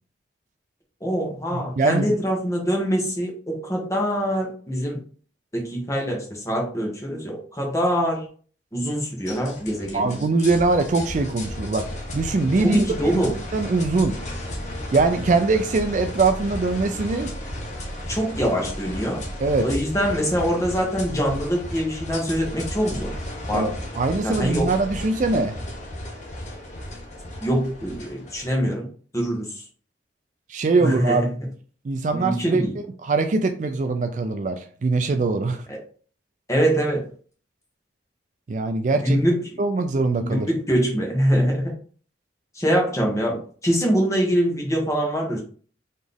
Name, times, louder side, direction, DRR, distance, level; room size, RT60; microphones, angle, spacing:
voice 1, 1.0-5.0 5.5-8.2 8.7-10.1 12.6-13.3 18.1-19.2 19.6-23.1 23.5-23.7 24.2-24.7 27.4-28.9 29.1-29.6 30.8-31.3 32.1-32.7 35.7-35.8 36.5-37.1 39.0-39.6 40.3-41.7 42.5-45.4, equal, 15° left, -1 dB, 1.2 m, -24 dB
voice 2, 1.5-2.1 9.9-11.9 12.1-13.2 13.5-14.1 14.9-17.3 19.4-19.7 23.5-23.7 24.0-25.5 30.5-31.2 31.8-35.6 38.5-39.2 39.6-40.5, right 3 dB, 40° right, 7 dB, 0.3 m, -22 dB
sound 1, 9.3-28.5, left 1 dB, 40° left, 0.8 m, -34 dB
4.1 x 3.0 x 3.4 m, 0.43 s
head